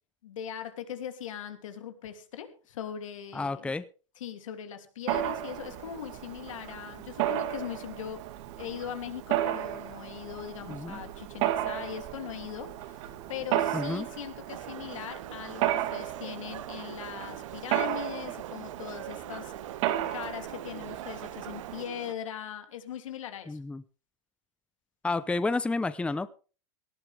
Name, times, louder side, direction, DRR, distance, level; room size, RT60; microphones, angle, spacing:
voice 1, 0.2-3.7 4.2-8.2 8.6-19.5 20.1-23.6, left 9 dB, 85° left, 8 dB, 3.0 m, -40 dB
voice 2, 3.3-3.9 10.7-11.0 13.7-14.1 23.5-23.8 25.0-26.3, left 3 dB, 5° left, 15 dB, 0.7 m, -30 dB
Mechanisms, 5.1-21.9, right 13 dB, 60° right, 2.1 m, -34 dB
sound 1, 14.5-22.1, right 12 dB, 80° right, 1.1 m, -44 dB
18.5 x 13.5 x 3.5 m, 0.37 s
hypercardioid pair, 120°, 16 cm